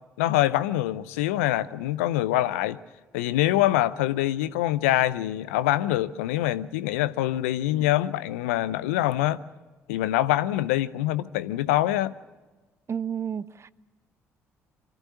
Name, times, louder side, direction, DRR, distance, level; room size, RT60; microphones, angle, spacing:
voice 1, 0.2-2.8 3.1-9.4 9.9-12.1, left 14 dB, 80° left, 0.6 m, -24 dB
voice 2, 12.9-13.7, right 8 dB, 40° right, 0.7 m, -31 dB
24.0 x 14.0 x 9.5 m
hypercardioid pair, 50°, 7 cm